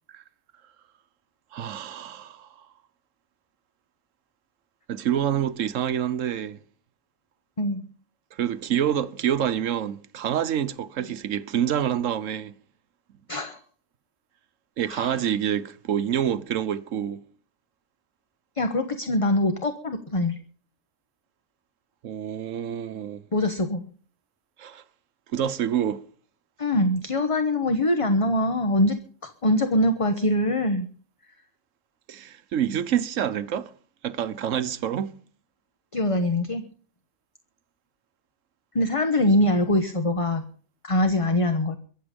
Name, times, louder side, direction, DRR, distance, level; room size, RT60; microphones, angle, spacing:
voice 1, 1.5-2.7 4.9-6.6 8.3-12.5 14.8-17.2 22.0-23.2 24.6-24.8 25.3-26.0 32.1-33.7 34.0-35.1, right 9 dB, 85° right, 1.2 m, -27 dB
voice 2, 13.3-13.6 14.9-15.2 18.6-20.4 23.3-23.8 26.6-29.0 29.2-30.9 35.9-36.6 38.7-40.4 40.8-41.8, left 1 dB, 30° left, 1.1 m, -23 dB
23.0 x 7.8 x 5.2 m
omnidirectional pair, 1.3 m